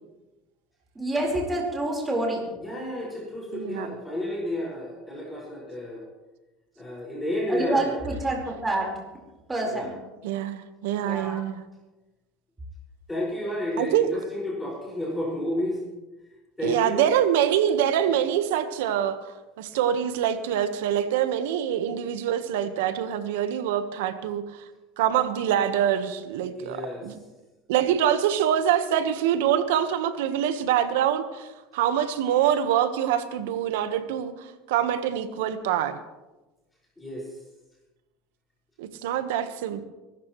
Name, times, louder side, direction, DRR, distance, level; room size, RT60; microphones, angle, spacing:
voice 1, 0.9-2.6 7.5-9.0 9.5-9.9 11.0-11.4, right 1 dB, 15° right, -1 dB, 4.5 m, -27 dB
voice 2, 2.6-6.1 6.8-7.9 9.7-9.9 13.1-15.8 16.6-17.1 18.1-18.2 26.6-27.1 37.0-37.4, left 1 dB, 10° left, -4 dB, 5.7 m, -31 dB
voice 3, 3.5-3.9 10.2-11.6 13.8-14.1 16.6-19.2 19.6-24.6 25.0-27.2 27.7-36.0 38.8-39.8, right 10 dB, 85° right, 10 dB, 1.3 m, -25 dB
24.5 x 13.5 x 3.2 m, 1.1 s
supercardioid pair, 120°, 0 cm